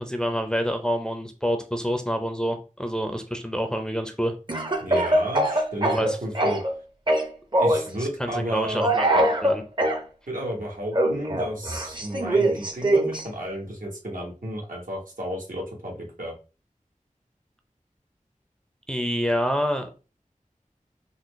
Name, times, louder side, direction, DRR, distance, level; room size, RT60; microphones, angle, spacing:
voice 1, 0.0-4.6 5.8-6.2 8.0-9.6 18.9-20.0, equal, 5° left, 0.5 m, -27 dB
Speech / Cough, 4.5-6.7 7.1-7.9 8.8-10.0 10.9-13.2, right 1 dB, 35° right, 0.6 m, -22 dB
voice 2, 4.8-6.6 7.6-8.8 10.3-16.3, equal, 80° right, 1.1 m, -32 dB
3.9 x 2.0 x 3.1 m
wide cardioid pair, 45°, 14 cm